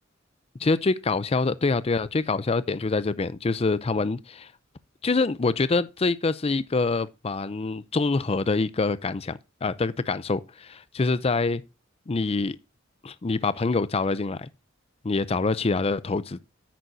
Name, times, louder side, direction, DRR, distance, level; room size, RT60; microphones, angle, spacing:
voice 1, 0.6-4.5 5.0-11.6 12.1-12.6 13.0-14.5 15.0-16.4, left 3 dB, 30° left, 0.5 m, -25 dB
10.5 x 8.9 x 2.7 m
head